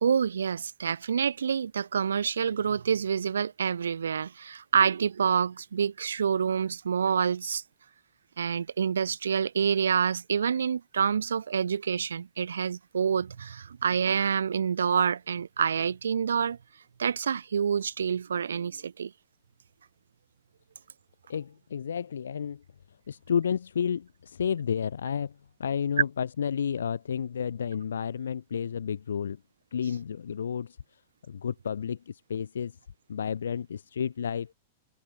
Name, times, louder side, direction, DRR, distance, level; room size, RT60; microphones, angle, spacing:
voice 1, 0.0-7.6 8.4-16.6 17.0-19.1, right 7 dB, 75° right, 0.3 m, -27 dB
voice 2, 21.3-22.6 23.1-29.4 29.7-30.8 31.3-32.8 33.1-34.5, left 7 dB, 75° left, 1.5 m, -31 dB
figure-of-eight pair, 100°, 0 cm